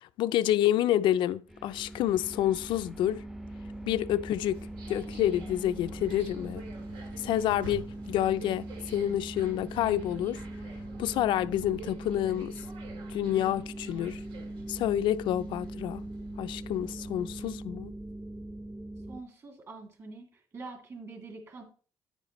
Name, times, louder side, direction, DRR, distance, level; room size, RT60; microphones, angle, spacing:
voice 1, 0.0-3.2 3.8-4.6 4.9-6.6 7.2-10.4 11.0-12.5 13.1-14.2 14.7-16.0 16.4-17.9, left 12 dB, 85° left, 0.4 m, -28 dB
sound 1, 1.5-19.2, right 1 dB, 5° right, 0.5 m, -41 dB
sound 2, 4.5-17.5, right 3 dB, 90° right, 2.0 m, -49 dB
voice 2, 19.1-21.6, right 3 dB, 40° right, 2.5 m, -45 dB
9.4 x 8.9 x 3.0 m
cardioid pair, 135°, 8 cm